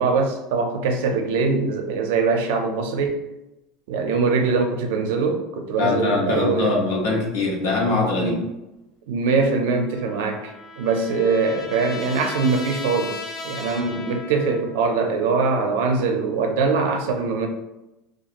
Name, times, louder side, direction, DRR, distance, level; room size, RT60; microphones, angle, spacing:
voice 1, 0.0-3.2 3.9-6.7 8.2-8.5 9.1-17.5, right 4 dB, 70° right, 4 dB, 0.4 m, -22 dB
voice 2, 5.8-8.3, left 3 dB, 85° left, -2 dB, 0.9 m, -22 dB
Trumpet, 9.7-14.9, left 3 dB, 5° left, 0.3 m, -37 dB
2.8 x 2.3 x 2.4 m, 0.95 s
cardioid pair, 175°, 0 cm